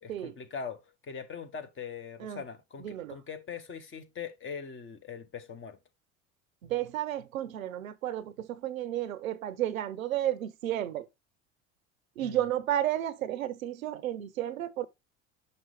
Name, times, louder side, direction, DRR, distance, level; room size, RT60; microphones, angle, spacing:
voice 1, 0.0-5.8 12.2-12.4, left 6 dB, 30° left, 1.0 m, -41 dB
voice 2, 2.8-3.2 6.6-11.1 12.2-14.9, right 12 dB, 85° right, 0.6 m, -32 dB
5.8 x 5.4 x 3.2 m
hypercardioid pair, 65°, 40 cm